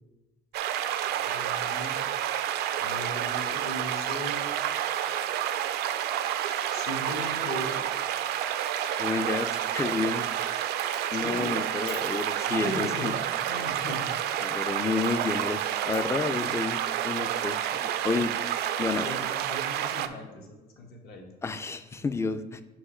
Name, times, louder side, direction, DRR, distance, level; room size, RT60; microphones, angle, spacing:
sound 1, 0.5-20.1, right 11 dB, 75° right, 0.4 m, -29 dB
voice 1, 1.1-2.0 2.8-4.6 6.7-7.9 11.1-11.5 12.5-14.4 16.3-16.5 18.9-21.2, left 1 dB, 65° left, 1 dB, 1.2 m, -38 dB
voice 2, 9.0-10.3 11.1-13.1 14.4-18.3 18.8-19.1 21.4-22.6, left 4 dB, 15° left, 11 dB, 0.3 m, -30 dB
Coin (dropping), 10.4-10.6 10.8-12.4 15.0-16.1, left 4 dB, 50° left, 1.2 m, -49 dB
4.7 x 4.6 x 4.3 m, 1.0 s
cardioid pair, 110°, 17 cm